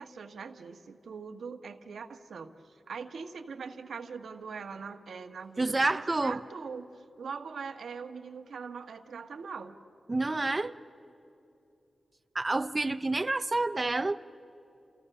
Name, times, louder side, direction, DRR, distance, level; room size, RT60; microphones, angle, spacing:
voice 1, 0.0-9.8, right 5 dB, 90° right, 1.4 m, -42 dB
voice 2, 5.6-6.4 10.1-10.7 12.3-14.2, right 2 dB, 30° right, 0.6 m, -28 dB
29.5 x 28.5 x 6.9 m
wide cardioid pair, 80°, 0 cm